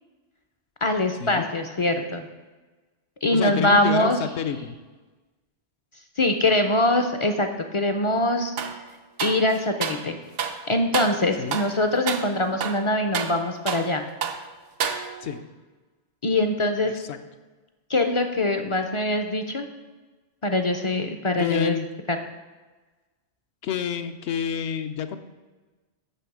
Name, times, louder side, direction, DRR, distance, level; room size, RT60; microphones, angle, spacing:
voice 1, 0.8-2.3 3.2-4.2 6.2-7.5 7.7-8.6 9.2-10.2 10.7-14.0 16.2-16.9 17.9-19.7 20.4-21.8 22.1-22.2, left 1 dB, 40° left, 6 dB, 0.4 m, -23 dB
voice 2, 3.3-4.7 11.4-11.6 15.2-15.4 16.8-17.2 21.4-21.9 23.6-25.2, left 7 dB, 70° left, 8 dB, 0.9 m, -29 dB
sound 1, 8.6-8.8 9.2-10.1 10.4-10.6 10.9-11.2 11.5-11.8 12.1-12.3 12.6-13.9 14.2-14.4 14.8-15.4, right 7 dB, 90° right, 1.1 m, -29 dB
10.0 x 3.5 x 7.1 m, 1.3 s
omnidirectional pair, 1.2 m